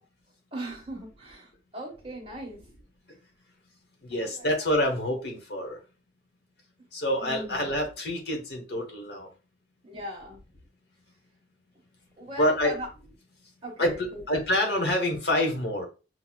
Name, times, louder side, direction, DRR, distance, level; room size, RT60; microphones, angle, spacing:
voice 1, 0.5-2.7 4.1-4.7 7.2-7.7 9.8-10.4 12.2-12.9 13.6-14.2, equal, 30° right, 1.1 m, -39 dB
voice 2, 4.0-5.8 6.9-9.3 12.4-12.7 13.8-15.9, left 1 dB, 65° left, 1.1 m, -27 dB
6.1 x 2.3 x 2.2 m
head